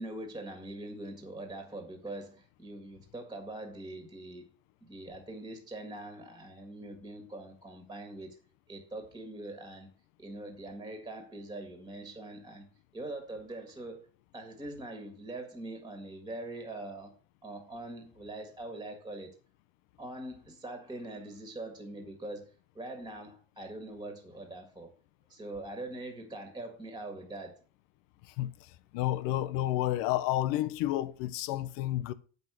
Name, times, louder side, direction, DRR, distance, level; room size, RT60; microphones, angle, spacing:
voice 1, 0.0-4.5 4.8-8.4 8.7-9.9 10.2-14.0 14.3-17.2 17.4-19.3 20.0-24.9 25.3-27.6, right 2 dB, 10° right, 1.8 m, -43 dB
voice 2, 28.2-32.1, left 14 dB, 80° left, 0.8 m, -31 dB
8.0 x 5.4 x 6.1 m
cardioid pair, 145°, 32 cm